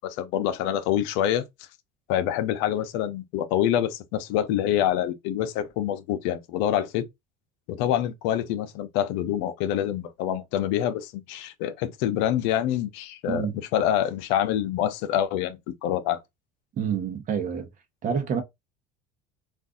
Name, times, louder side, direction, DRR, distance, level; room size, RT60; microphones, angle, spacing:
voice 1, 0.0-1.4 2.1-7.1 7.7-13.4 13.7-16.2, left 11 dB, 75° left, 0.6 m, -26 dB
voice 2, 13.3-13.6 16.8-17.7 18.0-18.4, right 7 dB, 40° right, 0.9 m, -27 dB
2.5 x 2.4 x 3.7 m
supercardioid pair, 115°, 19 cm